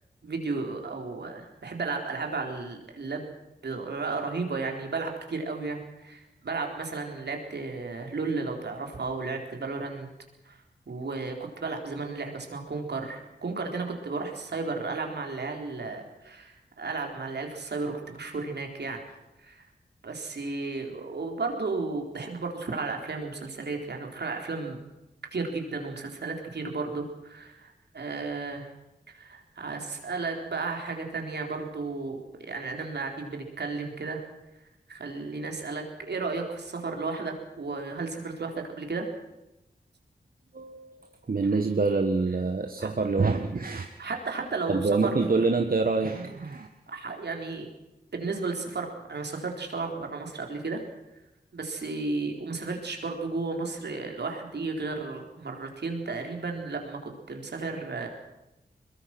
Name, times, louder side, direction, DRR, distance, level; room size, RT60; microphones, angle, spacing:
voice 1, 0.2-3.3 3.6-10.1 10.5-10.6 10.9-19.0 19.4-19.6 20.0-24.8 25.3-28.7 29.1-34.2 34.9-39.1 42.8-42.9 44.0-45.1 46.9-47.7 48.1-50.8 51.5-58.1, right 3 dB, 75° right, 2 dB, 4.0 m, -33 dB
voice 2, 40.5-43.9 44.7-46.7, right 3 dB, 55° right, 5 dB, 1.5 m, -26 dB
22.5 x 22.0 x 6.1 m, 0.95 s
cardioid pair, 50°, 18 cm